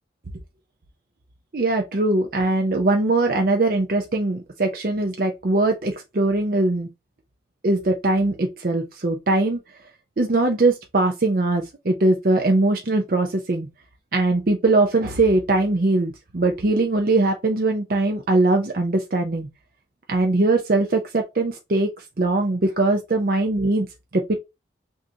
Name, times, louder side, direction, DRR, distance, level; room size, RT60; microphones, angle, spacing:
voice 1, 1.5-6.9 7.6-9.6 10.2-13.7 14.1-19.5 20.1-21.9 22.2-23.9 24.1-24.3, right 2 dB, 55° right, 0.6 m, -21 dB
6.0 x 2.7 x 2.8 m
head